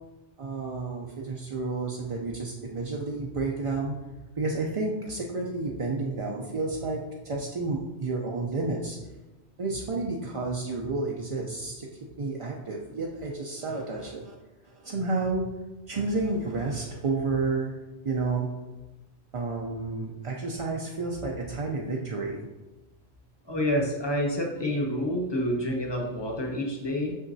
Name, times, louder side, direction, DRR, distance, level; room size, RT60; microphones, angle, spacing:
voice 1, 0.4-3.9 4.4-9.0 9.6-11.9 12.2-14.3 14.8-15.5 15.9-17.7 18.0-18.5 19.3-22.5, right 3 dB, 45° right, -2 dB, 0.4 m, -30 dB
voice 2, 23.5-27.1, equal, 25° left, 0 dB, 0.9 m, -28 dB
6.2 x 5.9 x 2.7 m, 1.1 s
omnidirectional pair, 1.2 m